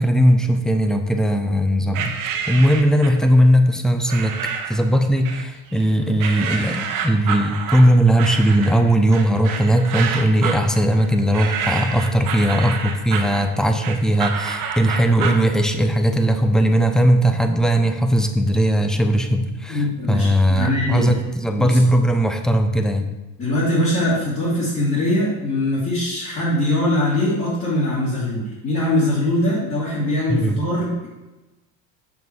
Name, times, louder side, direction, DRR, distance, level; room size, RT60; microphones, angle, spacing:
voice 1, 0.0-2.1 2.5-23.1 30.3-30.6, equal, ahead, 7 dB, 0.6 m, -18 dB
sound 1, 1.9-3.3 4.1-4.8 5.2-5.8 6.2-15.5, right 7 dB, 50° right, 1.2 m, -28 dB
voice 2, 19.7-21.1 21.6-21.8 23.4-31.1, left 1 dB, 30° left, -8 dB, 2.6 m, -22 dB
7.3 x 6.0 x 4.7 m, 1.1 s
supercardioid pair, 115°, 41 cm